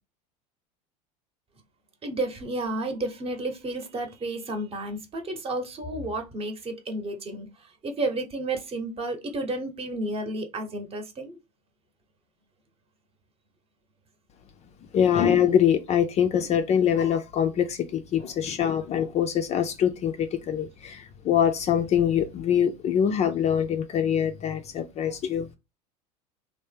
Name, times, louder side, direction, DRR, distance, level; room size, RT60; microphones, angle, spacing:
voice 1, 2.0-11.4, right 2 dB, 30° right, 0.9 m, -32 dB
voice 2, 14.9-25.5, left 8 dB, 35° left, 0.4 m, -24 dB
3.3 x 2.1 x 3.3 m
hypercardioid pair, 75°, 21 cm